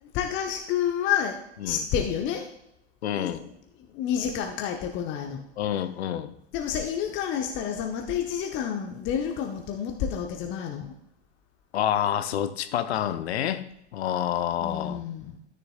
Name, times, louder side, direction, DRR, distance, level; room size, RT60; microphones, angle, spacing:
voice 1, 0.0-2.5 3.1-3.5 3.9-5.4 6.5-10.9 14.6-15.4, left 8 dB, 35° left, 3 dB, 0.9 m, -29 dB
voice 2, 3.0-3.4 5.6-6.3 11.7-13.6 13.9-15.0, left 10 dB, 65° left, 11 dB, 0.7 m, -28 dB
12.5 x 6.8 x 2.4 m, 0.82 s
figure-of-eight pair, 95°, 34 cm